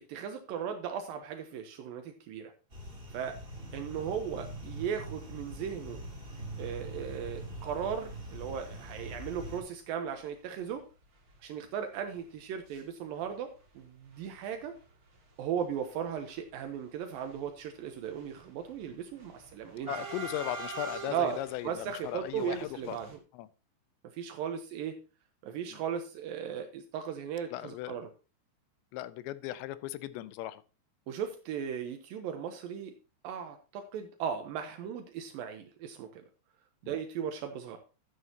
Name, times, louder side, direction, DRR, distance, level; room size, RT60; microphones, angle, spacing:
voice 1, 0.1-2.5 3.1-3.4 3.7-6.0 6.6-10.8 11.4-14.7 15.4-19.9 21.1-21.4 21.6-23.1 24.1-25.0 25.4-28.1 31.1-32.9 33.2-36.2 36.9-37.8, right 8 dB, 80° right, 5 dB, 2.0 m, -37 dB
sound 1, 2.7-9.6, right 1 dB, 20° right, 1.6 m, -43 dB
sound 2, 8.2-8.3 9.1-9.2 9.6-9.8 10.1-10.2 10.6-12.8 13.1-13.8 14.1-23.2, right 4 dB, 35° right, 1.4 m, -46 dB
voice 2, 19.9-23.0 23.3-23.5 27.5-28.0 28.9-30.6 36.8-37.0, left 14 dB, 80° left, 15 dB, 2.8 m, -37 dB
12.5 x 9.5 x 2.9 m, 0.33 s
omnidirectional pair, 5.3 m